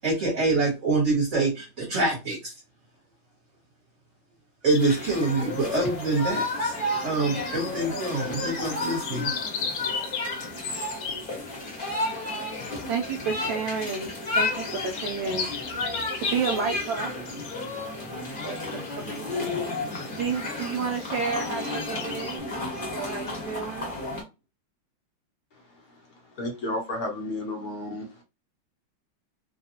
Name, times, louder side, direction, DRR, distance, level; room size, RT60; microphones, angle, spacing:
voice 1, 0.0-2.5 4.6-6.7 7.0-9.3, right 3 dB, 45° right, -3 dB, 1.3 m, -25 dB
sound 1, 4.7-22.4, left 6 dB, 75° left, 1.3 m, -38 dB
sound 2, 4.8-24.2, left 2 dB, 35° left, 1.0 m, -32 dB
voice 2, 12.9-14.1 14.3-15.5 16.1-17.3 18.4-19.5 20.2-22.4 22.9-24.0, right 5 dB, 75° right, 2 dB, 1.2 m, -31 dB
voice 3, 26.4-28.2, left 1 dB, 60° left, 1 dB, 1.1 m, -32 dB
3.4 x 2.3 x 2.8 m, 0.26 s
omnidirectional pair, 2.2 m